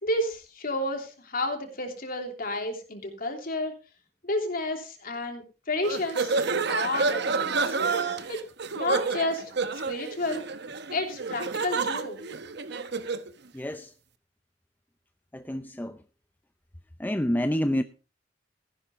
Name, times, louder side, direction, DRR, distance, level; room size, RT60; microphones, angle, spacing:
voice 1, 0.0-3.7 4.2-7.8 8.3-8.4 8.7-9.4 9.7-10.4 10.9-12.2, left 1 dB, 50° left, 3.1 m, -31 dB
sound 1, 5.8-13.3, right 4 dB, 60° right, 1.0 m, -29 dB
voice 2, 13.5-13.9 15.3-16.0 17.0-17.8, equal, 10° left, 0.6 m, -28 dB
14.5 x 11.5 x 3.7 m
head